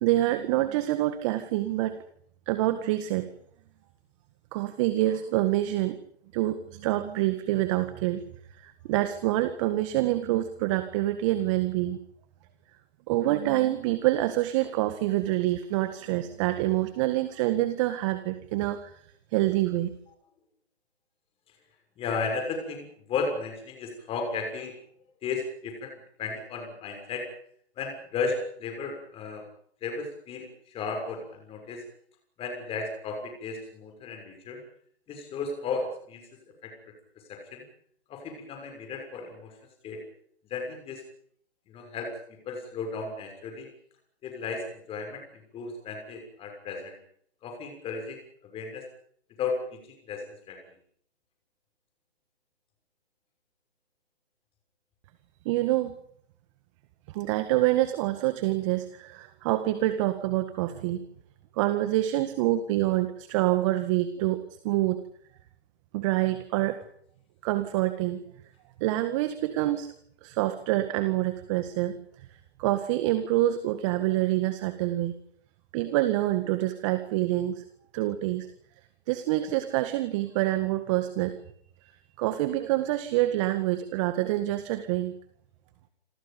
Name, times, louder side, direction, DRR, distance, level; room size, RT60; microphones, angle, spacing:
voice 1, 0.0-2.0 2.5-3.3 4.5-6.0 6.3-8.2 8.6-12.0 13.1-19.0 19.3-19.9 55.5-55.9 57.1-61.0 61.5-64.4 64.6-65.0 65.9-66.8 67.4-68.2 68.8-69.9 70.2-72.0 72.6-75.1 75.7-77.7 77.9-78.5 79.1-81.4 82.2-85.1, right 15 dB, 30° right, 10 dB, 1.8 m, -26 dB
voice 2, 22.0-24.7 25.2-25.9 26.2-27.3 27.8-29.4 29.8-31.8 32.4-34.6 35.1-36.2 36.6-36.7 37.3-37.6 38.1-39.5 39.8-40.0 40.5-41.0 41.7-42.1 42.5-43.7 44.2-45.2 45.5-47.0 47.4-48.8 49.4-50.2 50.5-50.6, left 4 dB, 15° left, 3 dB, 6.4 m, -34 dB
28.0 x 27.0 x 5.3 m, 0.65 s
hypercardioid pair, 140°, 32 cm